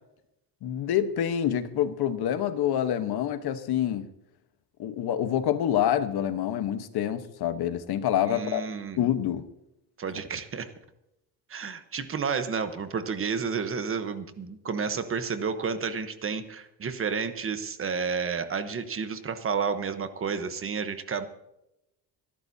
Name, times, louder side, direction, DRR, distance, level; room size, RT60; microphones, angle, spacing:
voice 1, 0.6-4.1 4.8-8.6 9.0-9.4, left 10 dB, 65° left, 10 dB, 1.2 m, -27 dB
voice 2, 8.2-9.0 10.0-10.7 11.5-21.3, right 5 dB, 30° right, 9 dB, 1.1 m, -31 dB
25.0 x 12.0 x 2.8 m, 0.85 s
cardioid pair, 160°, 42 cm